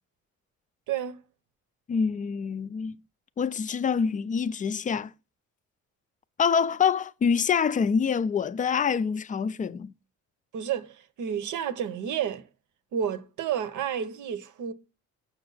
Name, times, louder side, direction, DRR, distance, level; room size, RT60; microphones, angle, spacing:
voice 1, 0.9-1.2 10.5-12.5 12.9-14.7, right 8 dB, 75° right, 0.8 m, -31 dB
voice 2, 1.9-3.0 3.4-5.1 6.4-9.9, left 6 dB, 25° left, 0.4 m, -26 dB
6.6 x 5.9 x 3.9 m
cardioid pair, 90°, 30 cm